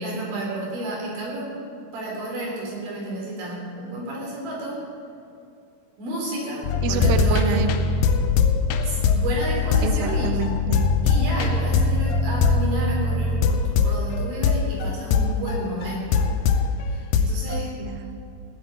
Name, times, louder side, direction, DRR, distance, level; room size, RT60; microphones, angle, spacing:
voice 1, 0.0-1.5 1.9-4.8 6.0-7.6 8.8-10.4 11.0-16.3 16.9-17.7, right 1 dB, 65° right, -3 dB, 6.3 m, -31 dB
sound 1, 6.6-16.7 17.1-17.6, left 4 dB, 85° left, 2.2 m, -21 dB
voice 2, 6.8-7.7 9.8-10.9 17.8-18.3, right 5 dB, 85° right, 7 dB, 2.0 m, -28 dB
17.5 x 8.3 x 9.2 m, 2.6 s
omnidirectional pair, 5.6 m